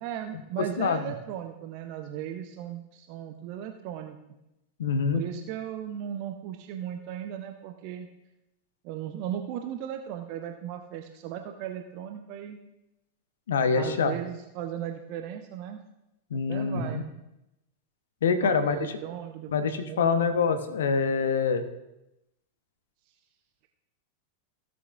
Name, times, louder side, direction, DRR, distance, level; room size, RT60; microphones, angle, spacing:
voice 1, 0.0-4.2 5.1-8.1 8.8-12.6 13.7-15.8 16.3-17.1 18.4-20.2, right 10 dB, 45° right, 6 dB, 0.7 m, -37 dB
voice 2, 0.6-1.0 4.8-5.2 13.5-14.1 16.3-17.0 18.2-18.8 19.5-21.6, left 5 dB, 65° left, 9 dB, 0.9 m, -25 dB
15.5 x 8.0 x 2.5 m, 0.91 s
figure-of-eight pair, 90°, 0 cm